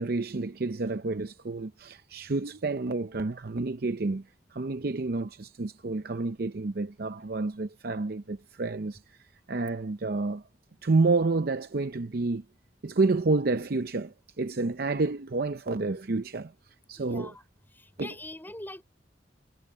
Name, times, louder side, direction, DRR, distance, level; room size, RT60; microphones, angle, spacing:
voice 1, 0.0-4.2 4.5-9.0 9.5-10.4 10.8-12.4 12.8-16.5 16.9-17.3 18.0-18.1, right 3 dB, 55° right, 0.6 m, -29 dB
voice 2, 17.0-17.4 17.8-18.8, left 1 dB, 10° left, 5.7 m, -42 dB
head